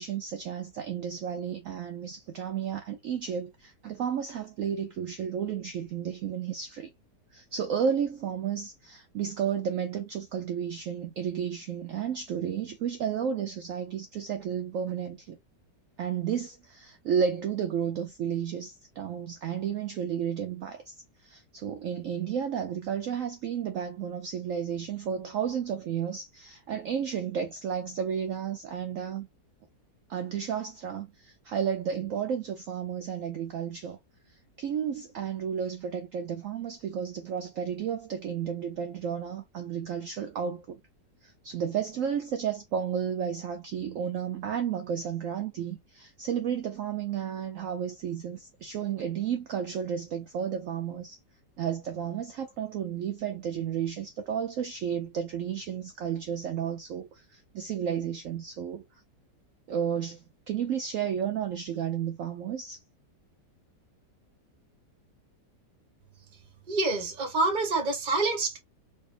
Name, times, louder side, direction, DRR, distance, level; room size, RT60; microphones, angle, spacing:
voice 1, 0.0-6.9 7.3-15.4 16.0-29.3 30.1-34.0 34.3-40.8 41.2-51.2 51.6-58.8 59.7-62.8, right 8 dB, 75° right, 0.7 m, -32 dB
voice 2, 66.7-68.6, right 3 dB, 35° right, 0.8 m, -27 dB
4.3 x 2.7 x 2.5 m
omnidirectional pair, 1.9 m